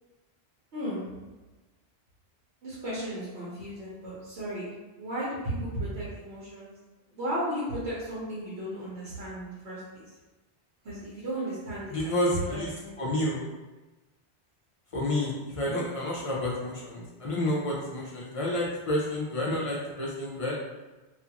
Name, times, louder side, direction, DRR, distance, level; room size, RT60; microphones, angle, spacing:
voice 1, 0.7-1.0 2.6-4.7 5.0-6.7 7.1-10.0 10.8-13.0 15.7-15.8, right 1 dB, 80° right, -9 dB, 1.1 m, -35 dB
voice 2, 11.9-13.5 14.9-20.5, left 1 dB, 45° left, -4 dB, 0.4 m, -30 dB
2.5 x 2.4 x 2.8 m, 1.2 s
omnidirectional pair, 1.1 m